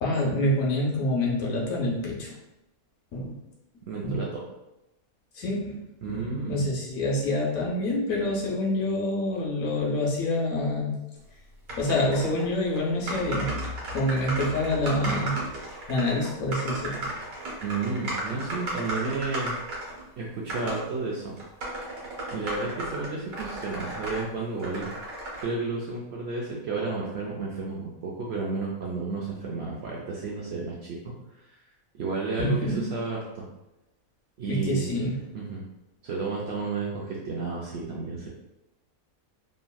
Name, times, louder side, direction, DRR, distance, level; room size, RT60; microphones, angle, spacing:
voice 1, 0.0-2.3 3.1-3.3 4.0-4.2 5.4-5.8 6.1-10.9 11.8-13.5 13.9-17.1 32.4-32.9 34.5-35.3, left 1 dB, 75° left, -2 dB, 1.1 m, -27 dB
voice 2, 3.9-4.4 6.0-6.6 17.6-19.5 20.2-21.3 22.3-24.9 25.4-31.1 31.5-31.6 32.0-33.4 34.4-34.9 35.3-35.6 36.0-38.3, right 3 dB, 65° right, -4 dB, 0.6 m, -32 dB
sound 1, 11.7-12.5 12.7-12.8 13.1-20.0 20.5-20.8 21.4-24.2 24.6-25.4, right 1 dB, 80° right, 1.4 m, -34 dB
3.0 x 2.6 x 2.2 m, 0.94 s
omnidirectional pair, 1.5 m